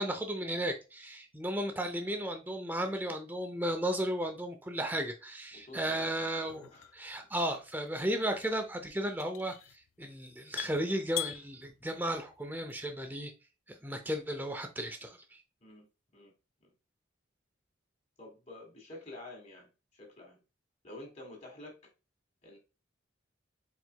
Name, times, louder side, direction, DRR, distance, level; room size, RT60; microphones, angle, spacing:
voice 1, 0.0-9.6 10.0-13.3 13.7-15.2, right 1 dB, 10° right, 0.5 m, -34 dB
voice 2, 5.5-6.9 15.6-15.9 16.1-16.3 16.6-16.7 18.2-20.4 20.8-21.7 22.4-22.6, left 2 dB, 35° left, 1.5 m, -49 dB
sound 1, 5.6-13.1, left 14 dB, 80° left, 0.3 m, -45 dB
4.5 x 4.0 x 2.2 m
head